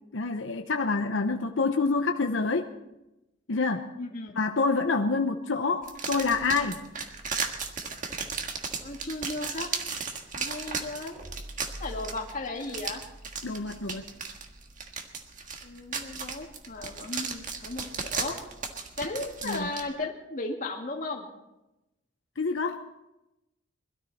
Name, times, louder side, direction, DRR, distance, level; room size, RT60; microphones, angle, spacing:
voice 1, 0.1-2.7 3.5-3.9 4.4-6.8 13.4-14.0 19.4-19.7 22.4-22.8, left 4 dB, 80° left, 4 dB, 0.8 m, -27 dB
voice 2, 4.0-4.4 8.8-9.7 10.4-11.2 11.8-13.0 15.6-18.4 19.0-21.3, left 2 dB, 45° left, 1 dB, 2.2 m, -35 dB
sound 1, 5.8-19.8, right 5 dB, 45° right, 1.6 m, -36 dB
21.5 x 13.0 x 4.2 m, 0.95 s
head